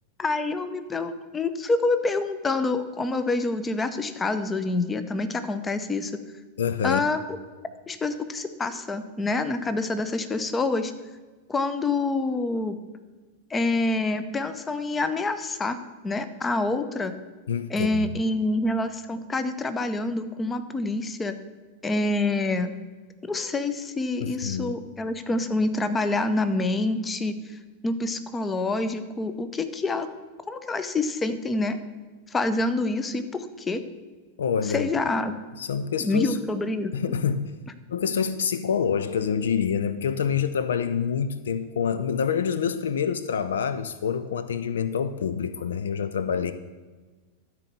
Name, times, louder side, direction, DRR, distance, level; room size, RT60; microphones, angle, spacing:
voice 1, 0.2-6.2 6.8-7.2 7.9-10.9 11.5-12.8 13.5-15.8 16.0-17.1 17.7-21.3 21.8-22.7 23.2-27.4 27.8-30.1 30.5-31.8 32.3-33.8 34.7-35.3 36.0-37.2, left 2 dB, 15° left, 11 dB, 0.7 m, -27 dB
voice 2, 6.6-7.0 17.5-18.2 24.2-24.8 34.4-34.9 35.6-36.4 36.9-37.5 37.9-46.5, left 7 dB, 65° left, 13 dB, 0.4 m, -27 dB
12.5 x 4.6 x 6.8 m, 1.3 s
figure-of-eight pair, 90°, 0 cm